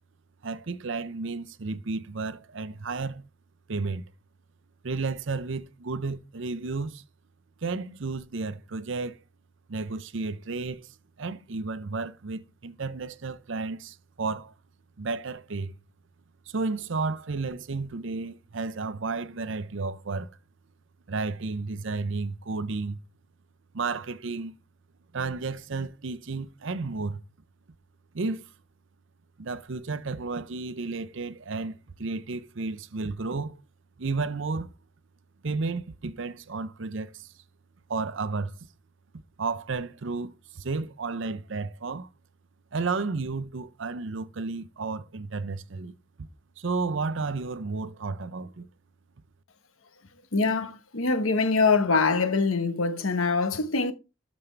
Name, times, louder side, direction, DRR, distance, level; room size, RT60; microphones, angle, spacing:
voice 1, 0.4-3.2 3.7-4.1 4.8-7.0 7.6-9.2 9.7-14.5 15.0-15.8 16.5-20.4 21.1-23.0 23.7-24.5 25.1-27.2 28.1-28.5 29.4-33.6 34.0-34.7 35.4-37.3 37.9-38.5 39.4-42.1 42.7-45.9 46.6-48.7, right 3 dB, 65° right, 0.6 m, -32 dB
voice 2, 50.3-53.9, left 4 dB, 85° left, 1.3 m, -24 dB
12.5 x 5.3 x 3.4 m
head